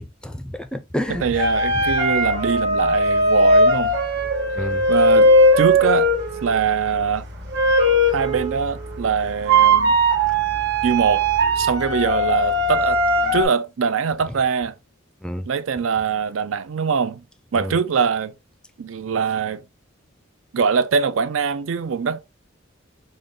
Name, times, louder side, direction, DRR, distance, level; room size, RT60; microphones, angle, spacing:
voice 1, 0.0-1.5 1.7-1.8 4.6-4.9 15.2-15.5 17.5-17.8, equal, 5° left, 0.4 m, -29 dB
sound 1, 1.1-13.4, right 1 dB, 60° right, 1.3 m, -19 dB
voice 2, 1.2-4.0 4.9-6.1 6.4-7.3 8.1-10.0 10.8-11.3 11.6-13.0 13.3-14.7 15.5-17.2 17.5-18.3 18.8-19.6 20.5-22.2, right 6 dB, 80° right, 0.5 m, -22 dB
5.0 x 2.2 x 3.8 m
head